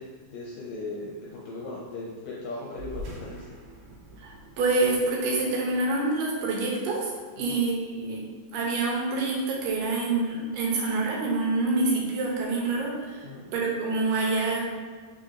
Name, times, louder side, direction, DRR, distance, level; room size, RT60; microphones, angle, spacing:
voice 1, 0.0-3.6 7.5-7.6 13.2-13.5, left 2 dB, 75° left, -5 dB, 1.7 m, -38 dB
sound 1, 2.7-7.6, equal, 70° right, 2.1 m, -45 dB
voice 2, 4.2-7.1 7.4-8.2 8.5-13.2 13.5-14.7, right 3 dB, 85° right, -2 dB, 2.4 m, -26 dB
5.0 x 3.9 x 2.5 m, 1.5 s
omnidirectional pair, 3.8 m